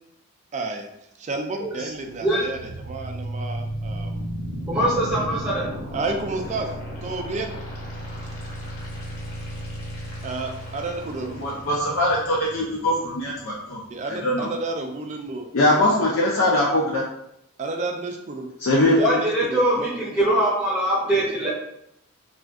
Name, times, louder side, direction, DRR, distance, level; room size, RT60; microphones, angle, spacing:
voice 1, 0.5-0.9 1.2-4.2 5.9-6.7 7.0-7.5 10.2-11.4 13.9-15.5 17.6-18.5 18.9-19.9, right 3 dB, 30° right, 4 dB, 0.3 m, -31 dB
sound 1, 1.9-13.9, right 1 dB, 75° left, 1.2 m, -34 dB
voice 2, 4.7-5.7 19.0-21.5, right 1 dB, 15° right, -9 dB, 0.7 m, -22 dB
voice 3, 11.4-13.8 14.1-14.5 15.5-17.0 18.6-19.0, left 1 dB, 60° left, -4 dB, 0.5 m, -21 dB
2.5 x 2.3 x 3.4 m, 0.80 s
head